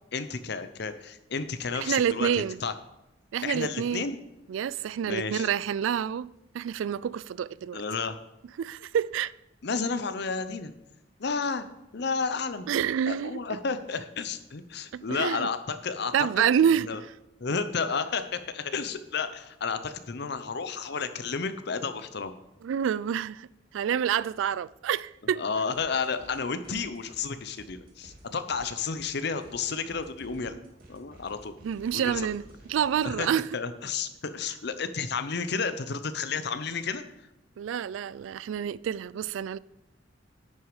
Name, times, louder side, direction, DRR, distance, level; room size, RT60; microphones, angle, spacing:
voice 1, 0.1-2.7 3.4-4.2 5.0-5.5 7.7-8.2 9.6-10.7 11.2-11.6 11.9-12.7 13.1-16.4 16.8-17.0 17.4-22.3 25.3-30.5 30.9-31.5 31.9-32.2 33.0-33.3 33.5-37.0, left 5 dB, 60° left, 0.7 m, -31 dB
voice 2, 1.8-2.6 3.3-4.0 4.5-7.8 8.6-9.3 12.7-13.4 14.9-15.5 16.1-17.1 22.6-23.5 23.7-25.4 31.6-32.4 32.7-33.5 37.6-39.6, right 8 dB, 85° right, 0.3 m, -28 dB
sound 1, 25.7-26.4 26.6-33.1, right 1 dB, 50° right, 2.0 m, -53 dB
10.0 x 6.3 x 4.9 m
head